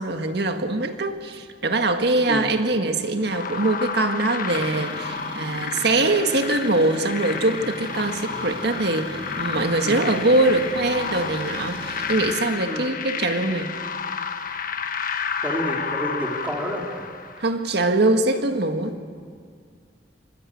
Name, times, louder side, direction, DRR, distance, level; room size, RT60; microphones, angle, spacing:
voice 1, 0.0-13.7 17.4-19.0, right 2 dB, 65° right, 6 dB, 1.7 m, -23 dB
sound 1, 3.2-17.6, left 6 dB, 50° left, 1.3 m, -31 dB
sound 2, 4.5-12.3, right 1 dB, 30° right, 2.9 m, -38 dB
voice 2, 15.4-17.0, equal, 10° right, -1 dB, 3.2 m, -29 dB
25.0 x 22.5 x 8.6 m, 2.1 s
head